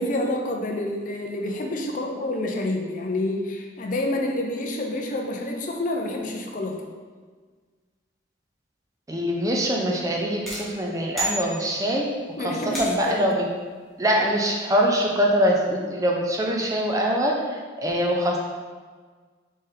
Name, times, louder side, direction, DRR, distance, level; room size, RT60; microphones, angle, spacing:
voice 1, 0.0-6.8 12.4-13.3, left 1 dB, 45° left, 1 dB, 0.5 m, -28 dB
voice 2, 9.1-12.1 12.4-13.5 14.0-18.4, equal, 20° right, -1 dB, 0.5 m, -23 dB
sound 1, 10.5-12.1 12.7-13.3, right 1 dB, ahead, 0.9 m, -32 dB
4.2 x 3.3 x 3.8 m, 1.5 s
head